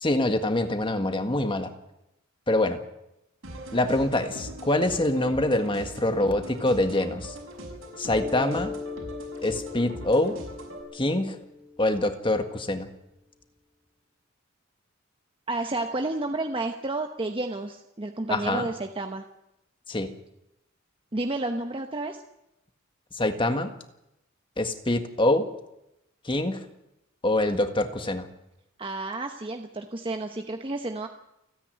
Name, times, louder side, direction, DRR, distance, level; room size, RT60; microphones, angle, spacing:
voice 1, 0.0-1.7 2.5-2.8 3.7-7.3 8.0-8.7 9.4-10.3 10.9-11.4 11.8-12.9 18.3-18.7 19.9-20.1 23.1-23.7 24.6-25.4 26.2-26.6 27.2-28.3, left 1 dB, 25° left, 7 dB, 1.7 m, -25 dB
sound 1, 3.4-10.8, equal, 75° right, 6.0 m, -40 dB
Mallet percussion, 8.1-12.5, left 4 dB, 5° right, 2.0 m, -39 dB
voice 2, 15.5-19.2 21.1-22.2 28.8-31.1, right 2 dB, 25° right, 5 dB, 1.0 m, -31 dB
29.0 x 10.0 x 9.1 m, 0.87 s
head